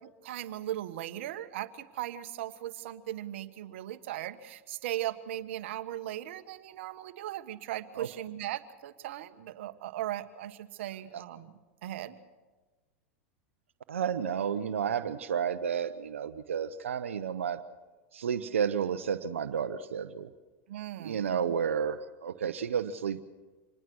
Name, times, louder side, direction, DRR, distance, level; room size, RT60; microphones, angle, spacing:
voice 1, 0.2-11.5 11.8-12.2 20.7-21.4, right 13 dB, 70° right, 11 dB, 1.3 m, -38 dB
voice 2, 13.9-17.6 18.1-20.3 21.0-23.2, right 7 dB, 90° right, 11 dB, 0.9 m, -31 dB
26.0 x 20.0 x 6.3 m, 1.2 s
hypercardioid pair, 100°, 7 cm